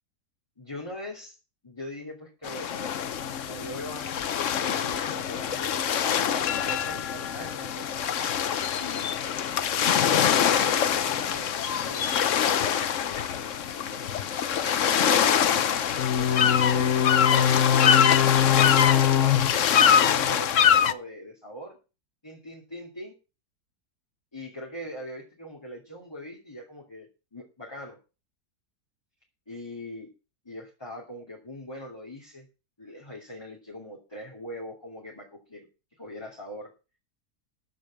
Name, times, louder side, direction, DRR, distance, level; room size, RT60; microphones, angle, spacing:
voice 1, 0.6-1.4 1.6-2.9 3.3-4.3 4.6-8.3 8.6-9.2 9.7-14.1 14.5-15.8 16.1-18.1 18.5-21.8 22.2-23.2 24.3-28.0 29.5-30.1 30.4-32.5 32.8-35.7 36.0-36.7, equal, 15° left, -2 dB, 2.8 m, -41 dB
sound 1, 2.4-20.9, left 8 dB, 60° left, 1.1 m, -23 dB
14.0 x 5.1 x 8.7 m, 0.32 s
omnidirectional pair, 1.7 m